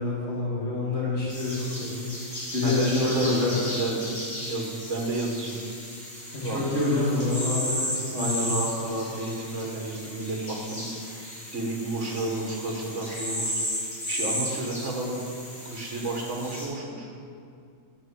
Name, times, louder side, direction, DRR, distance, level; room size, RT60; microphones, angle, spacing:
voice 1, 0.0-3.6 6.3-8.5, left 3 dB, 55° left, -7 dB, 2.7 m, -27 dB
sound 1, 1.3-16.7, equal, 35° left, 3.0 m, -35 dB
voice 2, 2.6-4.1 4.4-5.5 6.4-6.6 8.1-13.5 14.1-15.2 15.7-17.1, right 2 dB, 65° right, 0 dB, 1.8 m, -31 dB
8.8 x 5.5 x 6.9 m, 2.4 s
omnidirectional pair, 1.4 m